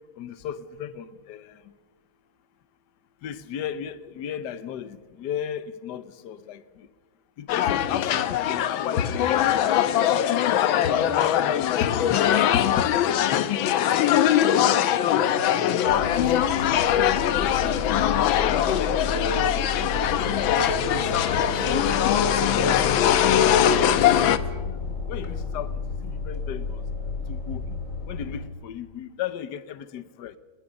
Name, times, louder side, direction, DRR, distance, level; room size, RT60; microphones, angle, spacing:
voice 1, 0.2-1.6 3.2-6.6 7.4-9.4 10.4-13.4 17.2-19.7 20.9-24.8 25.1-26.8 27.3-27.6 28.1-30.4, left 8 dB, 65° left, 1.4 m, -34 dB
sound 1, 7.5-24.4, left 10 dB, 90° left, 1.6 m, -22 dB
voice 2, 7.7-8.0 14.7-16.7 17.5-18.3, equal, 55° right, 8.8 m, -41 dB
sound 2, 15.9-28.5, left 4 dB, 40° left, 2.8 m, -32 dB
sound 3, 18.9-23.7, right 4 dB, 85° right, 3.9 m, -34 dB
24.5 x 20.0 x 5.3 m
omnidirectional pair, 2.1 m